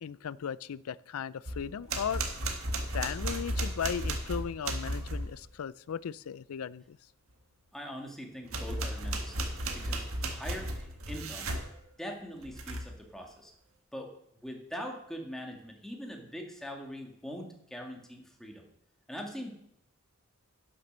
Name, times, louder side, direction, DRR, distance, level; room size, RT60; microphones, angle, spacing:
voice 1, 0.0-2.5 2.9-7.0, left 7 dB, 85° left, 20 dB, 0.4 m, -37 dB
sound 1, 1.5-5.3 8.5-11.7 12.4-13.0, right 1 dB, 75° right, 1.7 m, -34 dB
voice 2, 7.7-11.5 12.0-13.5 13.9-14.1 14.4-18.6 19.1-19.5, equal, ahead, 1 dB, 1.9 m, -42 dB
11.0 x 7.5 x 6.6 m, 0.75 s
head